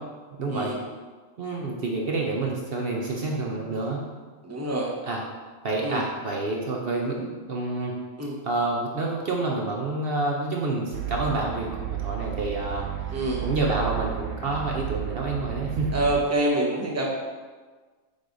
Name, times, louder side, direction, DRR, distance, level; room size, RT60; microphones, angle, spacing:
voice 1, 0.4-0.7 1.4-4.0 5.0-5.2 5.6-7.9 8.4-16.0, right 2 dB, 55° right, -1 dB, 0.8 m, -28 dB
voice 2, 4.4-5.0 5.8-6.0 8.2-8.4 13.1-13.4 15.9-17.1, right 1 dB, 15° right, -2 dB, 0.7 m, -26 dB
sound 1, 10.9-16.2, right 12 dB, 85° right, 1.1 m, -32 dB
5.4 x 4.8 x 3.9 m, 1.4 s
omnidirectional pair, 1.5 m